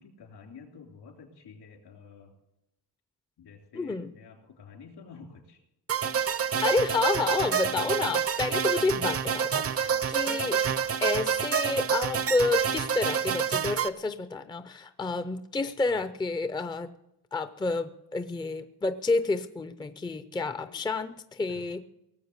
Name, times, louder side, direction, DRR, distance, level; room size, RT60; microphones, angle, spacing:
voice 1, 0.0-2.3 3.4-5.6 9.1-9.2 9.7-10.1 15.9-16.0 20.5-20.9 21.5-21.6, left 5 dB, 75° left, 3 dB, 3.4 m, -50 dB
voice 2, 3.7-4.1 6.6-10.6 11.0-17.0 17.3-21.8, left 3 dB, 10° left, 11 dB, 0.5 m, -29 dB
sound 1, 5.9-13.9, right 7 dB, 35° right, 0.6 m, -28 dB
18.5 x 7.5 x 8.0 m, 0.85 s
wide cardioid pair, 140°, 40 cm